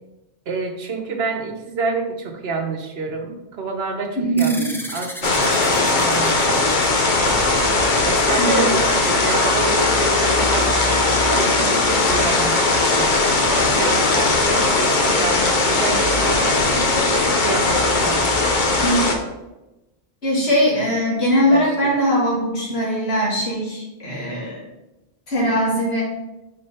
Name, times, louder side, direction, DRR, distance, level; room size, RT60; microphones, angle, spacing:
voice 1, 0.5-7.2 8.0-10.8 11.3-18.4 21.5-21.7 21.9-22.0, right 3 dB, 70° right, 4 dB, 1.1 m, -28 dB
voice 2, 4.2-4.7 8.4-8.7 18.8-19.0 20.2-24.6 25.3-26.0, equal, 75° left, -4 dB, 2.4 m, -20 dB
sound 1, 4.4-9.2, equal, 5° left, 0.4 m, -36 dB
sound 2, 5.2-19.1, left 2 dB, 50° left, 1.0 m, -18 dB
5.2 x 4.8 x 4.2 m, 0.98 s
omnidirectional pair, 1.1 m